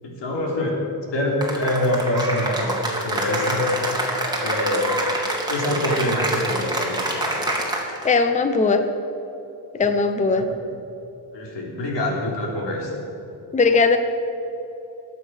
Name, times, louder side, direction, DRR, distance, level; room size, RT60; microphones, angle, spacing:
voice 1, 0.0-0.8 1.1-2.7 3.0-3.8 4.4-4.9 5.5-7.2 9.8-9.9 10.4-10.5 11.3-12.9, left 1 dB, 90° left, -1 dB, 3.5 m, -25 dB
Cheering / Applause, 1.4-8.1, right 1 dB, 10° right, 2.4 m, -26 dB
voice 2, 8.0-8.9 9.7-10.5 13.5-14.0, left 4 dB, 15° left, 8 dB, 0.7 m, -18 dB
21.5 x 8.2 x 6.3 m, 2.9 s
wide cardioid pair, 150°, 42 cm